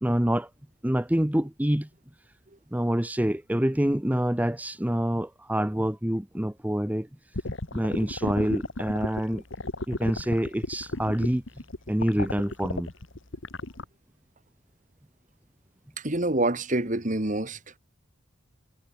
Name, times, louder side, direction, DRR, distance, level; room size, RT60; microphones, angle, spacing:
voice 1, 0.0-0.5 0.8-1.9 2.7-7.1 7.7-9.4 9.9-11.4 11.9-12.9, equal, 5° right, 0.7 m, -26 dB
sound 1, 7.3-13.8, left 2 dB, 65° left, 2.2 m, -33 dB
voice 2, 16.0-17.6, right 2 dB, 35° right, 1.9 m, -26 dB
head